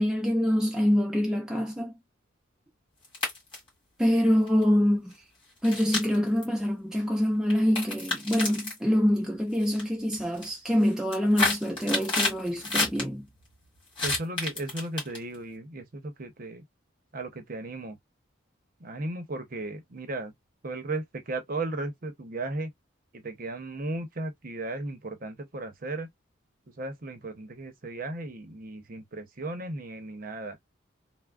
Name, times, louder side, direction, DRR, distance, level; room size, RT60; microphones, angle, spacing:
voice 1, 0.0-1.9 4.0-5.1 5.6-13.2, equal, 5° right, 0.3 m, -25 dB
sound 1, 3.0-3.7 4.5-4.6 5.6-6.4 7.5-8.8 9.5-9.8 10.1-10.5 10.9-13.0 14.0-15.4, left 3 dB, 25° left, 1.7 m, -29 dB
voice 2, 14.0-16.6 17.1-18.0 18.8-20.3 20.6-22.7 23.1-26.1 26.8-30.6, right 2 dB, 45° right, 0.7 m, -35 dB
3.4 x 2.0 x 2.2 m
head